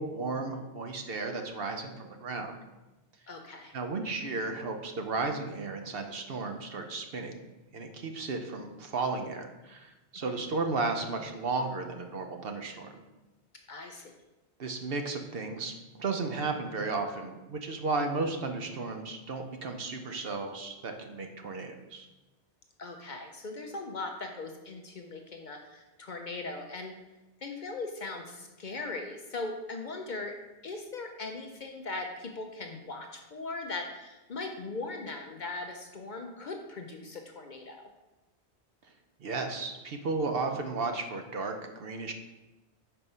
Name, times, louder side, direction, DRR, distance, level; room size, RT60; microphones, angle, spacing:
voice 1, 0.0-2.5 3.7-7.4 7.7-12.9 14.6-22.1 39.2-42.1, right 3 dB, 60° right, 5 dB, 0.9 m, -34 dB
voice 2, 3.3-3.7 10.3-10.4 13.7-14.1 22.8-26.9 27.4-30.3 30.6-37.9, left 3 dB, 50° left, 4 dB, 0.7 m, -39 dB
5.5 x 4.6 x 5.4 m, 1.1 s
omnidirectional pair, 1.2 m